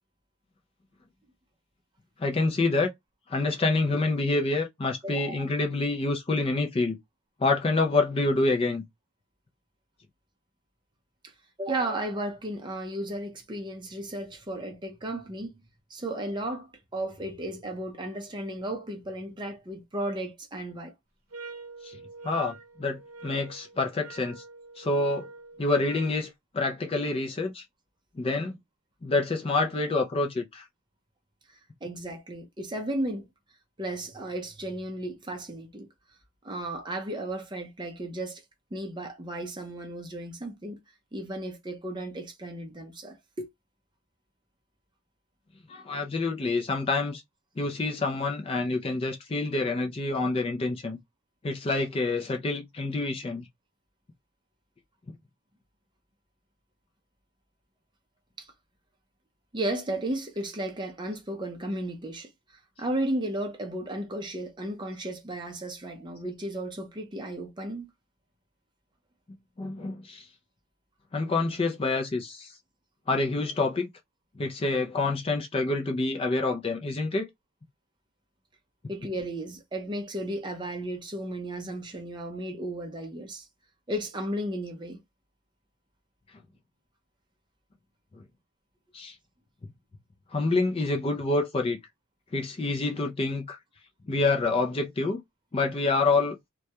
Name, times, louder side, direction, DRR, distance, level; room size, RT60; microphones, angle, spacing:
voice 1, 2.2-2.9 3.3-7.0 7.4-8.8 21.8-22.0 22.2-24.4 24.8-25.3 25.6-27.6 28.2-28.5 29.0-30.6 45.7-47.2 47.6-51.0 51.4-53.5 69.6-70.3 71.1-72.5 73.1-73.9 74.4-77.3 88.9-89.2 90.3-91.8 92.3-93.6 94.1-95.2 95.5-96.4, left 3 dB, 25° left, 0.3 m, -27 dB
voice 2, 5.0-5.4 11.2-11.3 11.6-15.5 15.9-20.9 31.5-33.3 33.8-35.9 36.4-38.4 38.7-40.8 41.1-43.5 58.4-58.5 59.5-62.3 62.8-67.9 78.9-83.5 83.9-85.0, right 1 dB, 20° right, 0.5 m, -34 dB
sound 1, 21.3-26.2, right 3 dB, 85° right, 0.7 m, -45 dB
2.2 x 2.1 x 2.7 m
head